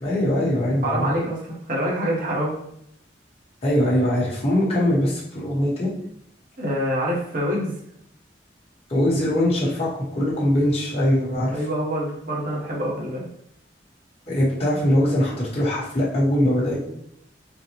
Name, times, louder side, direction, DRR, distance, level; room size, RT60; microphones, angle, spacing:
voice 1, 0.0-1.1 3.6-5.9 8.9-11.6 14.3-16.8, left 1 dB, 35° left, -8 dB, 1.0 m, -22 dB
voice 2, 0.8-2.5 6.6-7.7 11.5-13.3, equal, 50° right, -4 dB, 1.0 m, -26 dB
3.9 x 2.1 x 2.9 m, 0.71 s
head